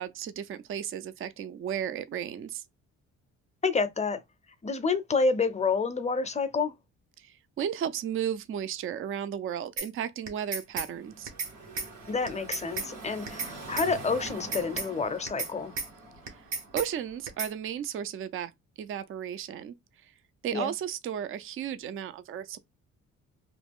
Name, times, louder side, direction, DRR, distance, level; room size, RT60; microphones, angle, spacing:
voice 1, 0.0-2.6 7.2-11.3 16.7-18.5 18.8-19.7 20.0-20.1 20.4-22.6, right 9 dB, 45° right, 0.4 m, -34 dB
voice 2, 3.6-4.2 4.6-6.7 12.1-15.7 20.5-20.7, left 4 dB, 25° left, 0.5 m, -28 dB
sound 1, 9.8-9.9 10.3-10.9 11.3-11.5 11.8-11.9 12.3-12.9 13.3-13.5 13.8-13.9 14.3-14.9 15.3-15.5 15.8-15.9 16.3-16.9 17.3-17.5, right 4 dB, 65° right, 1.1 m, -33 dB
Car passing by / Traffic noise roadway noise, 10.6-17.6, right 2 dB, 80° right, 1.5 m, -45 dB
3.0 x 2.3 x 3.5 m
cardioid pair, 90°, 30 cm